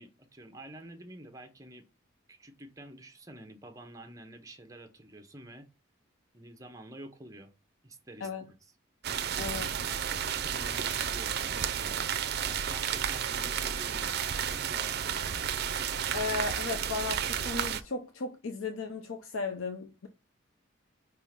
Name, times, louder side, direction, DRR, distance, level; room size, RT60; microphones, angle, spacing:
voice 1, 0.0-1.9 2.3-5.7 6.3-7.5 7.8-8.7 9.3-10.0 10.4-12.1 12.4-15.4, right 1 dB, 15° right, 0.8 m, -49 dB
sound 1, 9.0-17.8, right 8 dB, 55° right, 0.5 m, -32 dB
voice 2, 9.4-9.7 16.1-20.1, left 4 dB, 85° left, 0.6 m, -35 dB
5.1 x 3.6 x 5.7 m
head